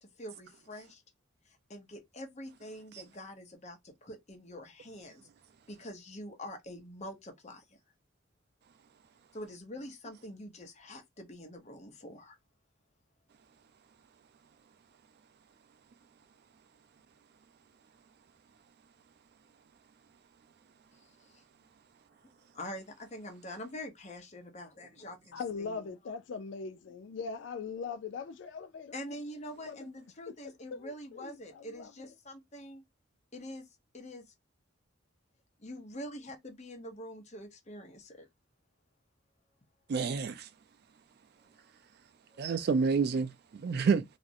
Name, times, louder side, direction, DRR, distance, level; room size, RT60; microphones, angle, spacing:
voice 1, 0.0-1.0 1.5-5.2 5.7-7.8 9.3-12.4 20.9-21.4 22.5-26.2 28.9-32.8 33.3-33.7 33.9-34.2 35.6-38.3 42.3-42.7, left 1 dB, 35° left, 0.7 m, -45 dB
voice 2, 25.3-28.9 29.6-29.9 30.7-32.1, left 5 dB, 65° left, 0.3 m, -40 dB
voice 3, 39.9-40.5 42.4-44.0, right 5 dB, 50° right, 0.3 m, -28 dB
2.4 x 2.0 x 2.6 m
head